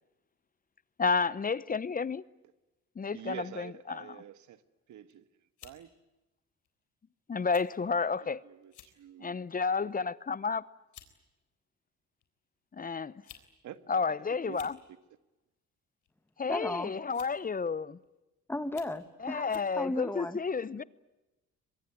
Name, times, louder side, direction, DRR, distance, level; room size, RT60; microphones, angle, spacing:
voice 1, 1.0-2.2 3.0-4.1 7.3-8.4 9.2-10.6 12.7-13.1 13.9-14.8 16.4-18.0 19.2-20.8, left 5 dB, 30° left, 0.8 m, -31 dB
voice 2, 3.1-4.6 4.9-5.3 5.6-5.9 8.2-9.4 13.6-13.8 14.3-15.0, right 11 dB, 70° right, 1.7 m, -47 dB
sound 1, 4.9-5.1 5.6-5.8 6.6-6.8 7.5-7.7 8.0-8.1 8.6-9.0 9.5-9.8 10.5-10.6 10.9-11.1 12.2-12.3 13.1-13.5 13.7-13.8 14.4-14.8 16.0-16.3 17.1-17.5 18.0-18.1 18.6-19.0 19.5-19.7, left 10 dB, 80° left, 3.7 m, -53 dB
voice 3, 16.5-16.9 18.5-20.4, left 2 dB, 5° left, 1.5 m, -35 dB
23.5 x 23.0 x 9.3 m
cardioid pair, 90°, 30 cm